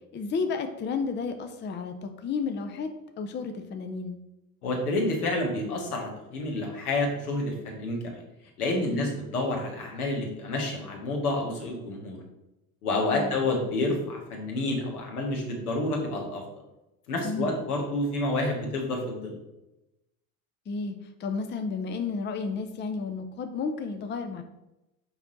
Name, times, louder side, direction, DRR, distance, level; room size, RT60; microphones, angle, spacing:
voice 1, 0.1-4.2 8.8-9.1 13.1-13.3 17.2-17.5 20.7-24.4, left 4 dB, 25° left, 7 dB, 0.6 m, -32 dB
voice 2, 4.6-8.2 8.6-12.2 12.8-16.4 17.1-19.3, left 2 dB, 80° left, 0 dB, 1.7 m, -29 dB
5.9 x 4.5 x 4.0 m, 0.93 s
hypercardioid pair, 70°, 44 cm